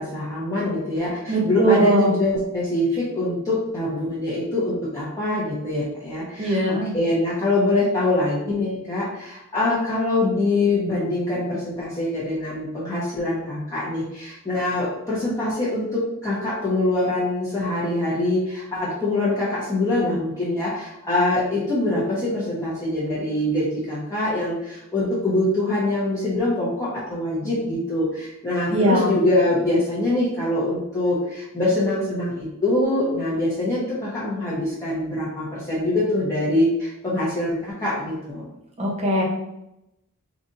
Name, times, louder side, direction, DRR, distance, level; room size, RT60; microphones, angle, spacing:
voice 1, 0.0-38.5, left 2 dB, 15° left, -9 dB, 1.0 m, -24 dB
voice 2, 1.3-2.2 6.4-6.9 28.7-29.1 38.8-39.2, right 1 dB, 30° right, -2 dB, 1.0 m, -20 dB
3.9 x 2.5 x 4.0 m, 0.86 s
head